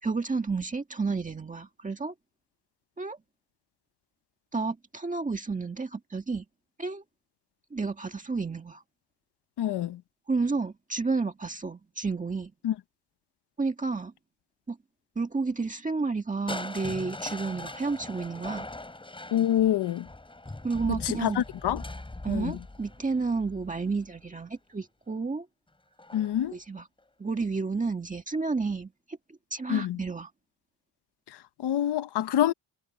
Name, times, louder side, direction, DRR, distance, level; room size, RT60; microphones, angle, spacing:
voice 1, 0.0-2.1 3.0-3.2 4.5-6.5 6.8-7.0 7.7-8.8 10.3-12.5 13.6-14.1 14.7-14.8 15.2-18.7 20.6-21.4 22.2-25.5 26.5-26.9 27.2-30.3, right 4 dB, 20° right, 1.8 m, -31 dB
voice 2, 9.6-10.0 12.6-12.7 19.3-20.1 20.9-21.8 22.3-22.6 26.1-26.6 29.7-30.0 31.6-32.5, left 11 dB, 65° left, 0.9 m, -26 dB
Crushing, 16.5-24.4 26.0-26.5 27.0-27.1, left 2 dB, 10° left, 5.6 m, -41 dB
wide cardioid pair, 170°, 43 cm